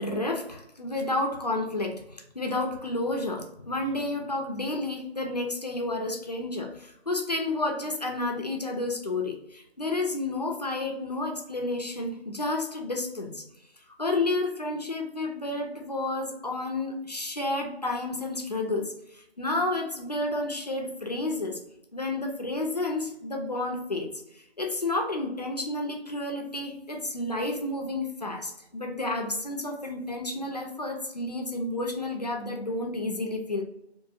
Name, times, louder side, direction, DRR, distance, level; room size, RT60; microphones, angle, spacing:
voice 1, 0.0-13.4 14.0-21.6 21.9-33.6, left 2 dB, 40° left, 2 dB, 0.4 m, -31 dB
2.7 x 2.6 x 2.3 m, 0.82 s
figure-of-eight pair, 165°, 32 cm